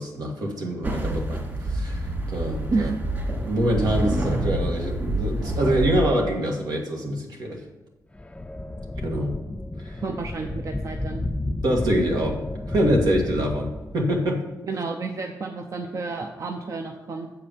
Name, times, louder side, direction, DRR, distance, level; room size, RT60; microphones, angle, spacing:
voice 1, 0.0-2.9 3.4-7.6 9.0-9.4 9.8-10.0 11.6-12.4 12.7-14.4, equal, 80° right, 0 dB, 1.8 m, -25 dB
sound 1, 0.8-6.0, right 1 dB, 35° right, 2.6 m, -27 dB
sound 2, 8.1-14.3, left 2 dB, 15° left, 0.4 m, -32 dB
voice 2, 10.0-11.2 14.7-17.3, right 3 dB, 55° right, 3 dB, 0.7 m, -30 dB
7.7 x 4.8 x 7.2 m, 1.0 s
cardioid pair, 80°, 7 cm